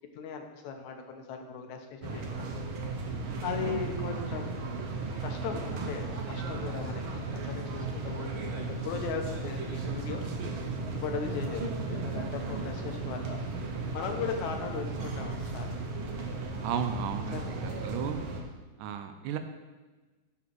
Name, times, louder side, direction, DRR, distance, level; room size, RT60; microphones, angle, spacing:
voice 1, 0.1-2.7 3.4-4.6 5.2-10.3 10.9-13.5 13.9-15.7 17.3-17.6, left 6 dB, 75° left, 4 dB, 2.1 m, -38 dB
sound 1, 2.0-18.4, right 3 dB, 70° right, 1.2 m, -35 dB
voice 2, 16.6-18.2 18.8-19.4, right 8 dB, 85° right, 8 dB, 2.2 m, -34 dB
9.5 x 4.2 x 6.2 m, 1.2 s
omnidirectional pair, 3.7 m